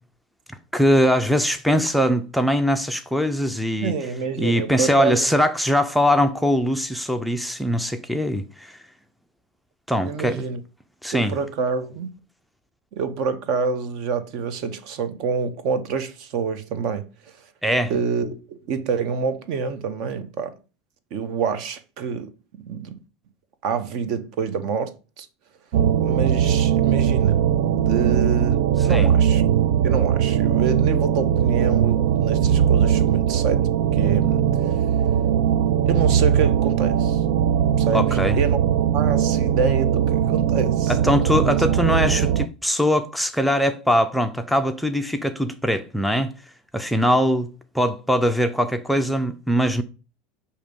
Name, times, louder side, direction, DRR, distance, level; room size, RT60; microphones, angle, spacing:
voice 1, 0.7-3.9 4.4-8.8 9.9-10.5 11.0-11.4 17.6-17.9 28.9-29.1 37.9-38.4 40.9-46.3 46.7-47.5 47.7-49.8, equal, ahead, 0.4 m, -21 dB
voice 2, 3.8-5.3 10.0-10.6 11.1-12.2 12.9-17.1 17.4-17.5 17.9-20.6 21.1-22.3 22.7-23.0 23.6-25.3 26.0-27.5 27.8-29.4 29.8-34.8 35.9-37.2 37.8-38.6 38.9-41.0 41.3-41.5, right 5 dB, 55° right, 0.9 m, -27 dB
sound 1, 25.7-42.5, right 9 dB, 75° right, 0.4 m, -20 dB
6.4 x 2.8 x 5.1 m
supercardioid pair, 145°, 0 cm